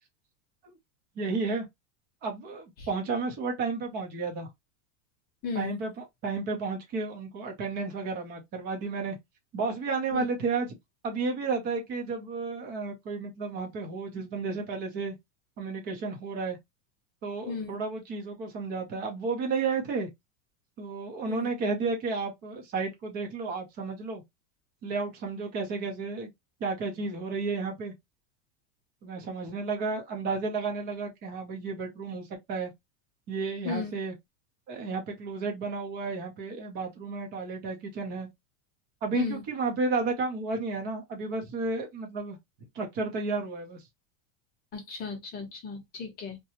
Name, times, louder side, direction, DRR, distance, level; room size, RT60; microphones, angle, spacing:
voice 1, 1.2-1.7 2.2-4.5 5.5-9.2 9.5-10.7 11.0-15.1 15.6-16.6 17.2-20.1 20.8-24.2 24.8-26.3 26.6-27.9 29.0-32.7 33.3-34.1 34.7-38.3 39.0-42.4 42.7-43.8, right 4 dB, 25° right, 0.7 m, -32 dB
voice 2, 17.5-17.8 21.3-21.5 33.6-33.9 39.1-39.4 44.7-46.4, left 4 dB, 25° left, 0.8 m, -35 dB
2.8 x 2.2 x 2.8 m
supercardioid pair, 170°, 41 cm